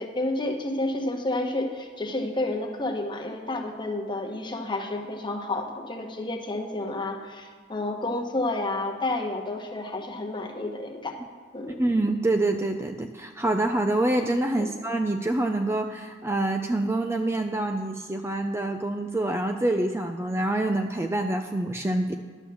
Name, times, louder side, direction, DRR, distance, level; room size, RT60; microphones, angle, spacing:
voice 1, 0.0-11.2 11.5-11.8 14.6-14.7, left 2 dB, 25° left, 2 dB, 1.2 m, -30 dB
voice 2, 11.8-22.1, right 2 dB, 15° right, 5 dB, 0.4 m, -26 dB
11.0 x 6.2 x 7.0 m, 1.5 s
head